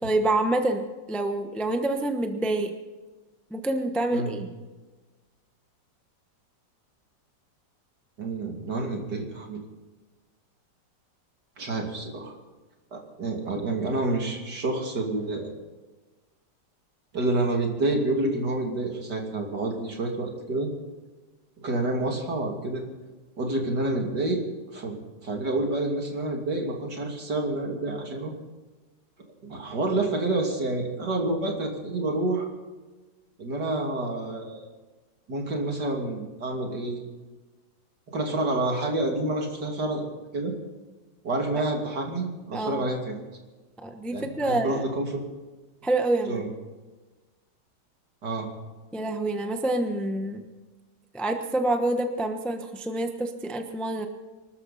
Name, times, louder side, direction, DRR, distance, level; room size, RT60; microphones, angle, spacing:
voice 1, 0.0-2.7 3.5-4.5 42.5-42.8 43.8-44.9 45.8-46.4 48.9-50.4 51.1-54.1, right 2 dB, ahead, 5 dB, 0.9 m, -27 dB
voice 2, 8.2-9.6 11.6-12.4 12.9-15.5 17.1-20.7 21.6-22.8 23.4-24.4 24.7-25.0 25.2-28.3 29.4-32.5 33.4-34.6 35.3-37.0 38.1-40.5 41.2-43.2 44.1-45.2 46.3-46.5 48.2-48.5, right 2 dB, 65° right, 1 dB, 3.3 m, -28 dB
25.0 x 13.0 x 4.2 m, 1.2 s
omnidirectional pair, 1.9 m